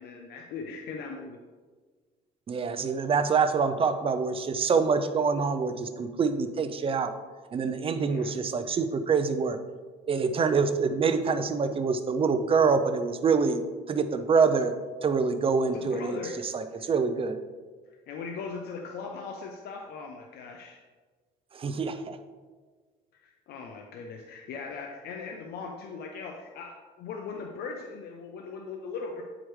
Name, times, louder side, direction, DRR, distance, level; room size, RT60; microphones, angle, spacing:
voice 1, 0.0-1.4 8.0-8.4 15.7-16.4 16.8-16.9 17.9-20.8 23.1-29.2, left 4 dB, 70° left, 2 dB, 0.7 m, -39 dB
voice 2, 2.5-7.1 7.5-9.6 10.1-13.6 13.9-14.7 15.0-16.2 16.5-17.4 21.5-22.2, right 5 dB, 35° right, 10 dB, 0.5 m, -25 dB
8.8 x 4.9 x 3.2 m, 1.4 s
cardioid pair, 110°, 17 cm